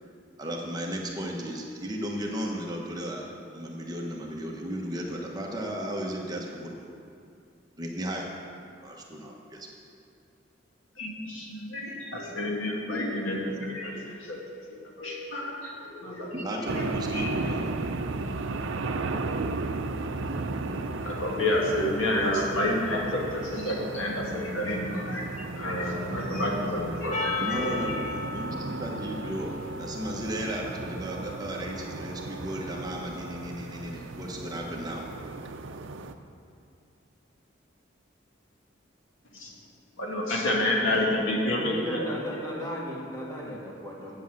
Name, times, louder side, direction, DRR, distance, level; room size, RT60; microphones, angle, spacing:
voice 1, 0.4-6.9 7.8-8.3 8.8-9.7 16.3-17.8 27.4-35.1, equal, 20° right, -1 dB, 1.1 m, -35 dB
voice 2, 11.0-14.4 14.7-16.5 16.8-17.3 21.0-27.8 28.5-28.6 39.3-39.5 40.0-42.1, left 1 dB, 90° left, -2 dB, 2.0 m, -29 dB
sound 1, 16.7-36.1, right 3 dB, 80° right, 0.6 m, -35 dB
Percussion, 27.1-31.7, left 3 dB, 35° left, 1.1 m, -36 dB
voice 3, 41.5-44.2, left 1 dB, 15° left, -4 dB, 1.9 m, -36 dB
8.7 x 8.1 x 7.6 m, 2.4 s
head